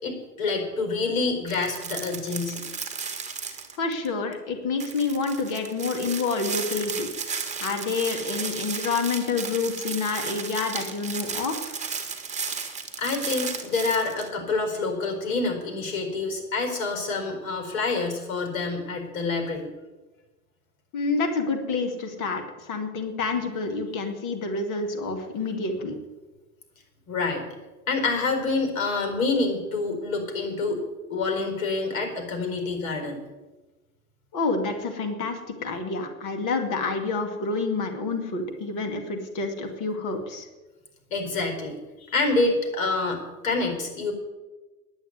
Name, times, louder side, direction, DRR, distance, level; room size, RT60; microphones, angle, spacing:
voice 1, 0.0-2.6 7.6-7.7 12.5-19.7 27.1-27.4 27.9-30.8 31.1-33.2 41.1-44.1, left 3 dB, 65° left, 4 dB, 4.5 m, -27 dB
sound 1, 1.5-4.1 4.3-4.4 4.8-14.3, right 5 dB, 15° right, 1.9 m, -34 dB
voice 2, 3.8-7.1 7.6-11.8 20.9-26.0 34.3-40.5, left 4 dB, 45° left, 5 dB, 2.5 m, -28 dB
10.5 x 9.1 x 9.7 m, 1.2 s
hypercardioid pair, 100°, 45 cm